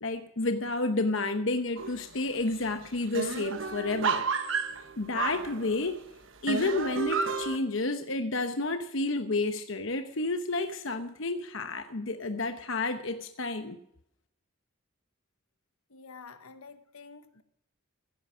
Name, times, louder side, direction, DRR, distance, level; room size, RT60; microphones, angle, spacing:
voice 1, 0.0-4.2 5.0-6.0 6.4-13.8, left 2 dB, 60° left, 1.0 m, -30 dB
sound 1, 1.8-2.2 2.5-2.6 2.8-6.0 6.5-7.6, right 5 dB, 60° right, 1.3 m, -31 dB
voice 2, 15.9-17.4, left 5 dB, 85° left, 1.3 m, -49 dB
16.0 x 10.0 x 6.2 m
head